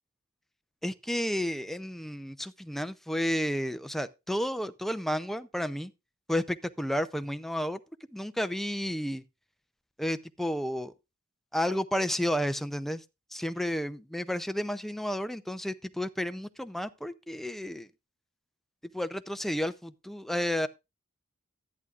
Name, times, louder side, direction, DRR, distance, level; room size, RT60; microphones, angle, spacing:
voice 1, 0.8-5.9 6.3-7.8 8.1-9.2 10.0-10.9 11.5-13.0 13.3-17.9 18.9-20.7, equal, ahead, 0.5 m, -31 dB
13.5 x 11.0 x 2.5 m
head